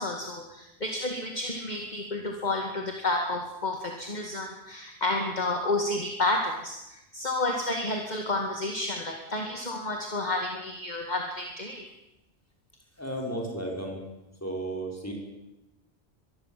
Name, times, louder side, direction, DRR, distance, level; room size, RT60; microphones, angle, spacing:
voice 1, 0.0-11.8, left 2 dB, 40° left, 2 dB, 2.3 m, -30 dB
voice 2, 13.0-14.0 14.4-15.1, right 1 dB, 15° left, 0 dB, 5.9 m, -33 dB
24.0 x 21.5 x 7.6 m, 0.95 s
omnidirectional pair, 1.2 m